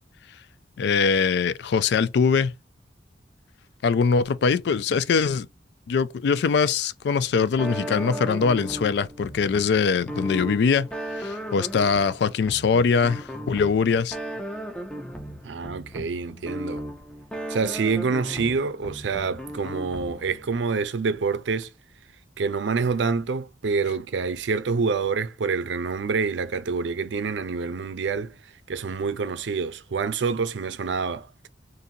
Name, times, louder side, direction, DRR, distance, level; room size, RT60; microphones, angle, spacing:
voice 1, 0.8-2.5 3.8-5.5 5.9-10.9 11.2-14.2, left 5 dB, 65° left, 0.3 m, -22 dB
sound 1, 7.6-20.5, equal, 5° left, 0.5 m, -36 dB
voice 2, 15.4-16.8 17.5-21.7 22.4-28.3 28.7-31.5, right 5 dB, 85° right, 0.5 m, -27 dB
3.9 x 2.6 x 2.7 m
head